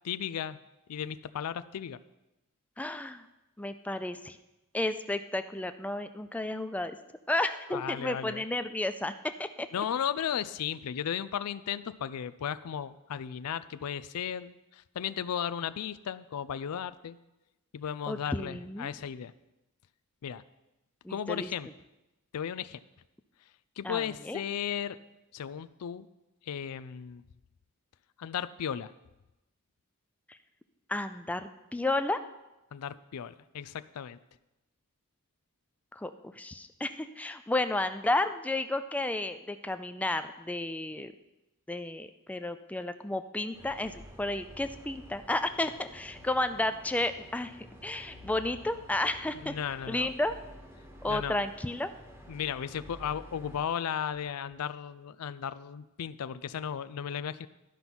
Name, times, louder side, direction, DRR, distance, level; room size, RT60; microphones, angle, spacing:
voice 1, 0.0-0.6 0.9-2.0 7.7-8.4 9.7-17.2 17.7-19.3 20.2-20.4 21.1-21.7 22.3-22.8 23.8-25.0 25.3-26.1 26.4-27.2 28.2-28.9 32.7-34.2 49.4-50.1 51.1-51.4 52.3-57.5, left 8 dB, 80° left, 14 dB, 0.4 m, -35 dB
voice 2, 2.8-3.2 3.6-4.4 4.7-7.0 7.3-9.1 9.4-9.7 18.1-18.9 21.0-21.5 23.8-24.4 30.3-30.4 30.9-32.2 35.9-41.1 41.7-47.6 47.8-49.5 49.9-50.4 51.0-51.9, left 2 dB, 5° left, 10 dB, 0.3 m, -32 dB
sound 1, 43.5-53.6, equal, 10° right, 1.1 m, -50 dB
12.0 x 5.5 x 6.0 m, 0.99 s
head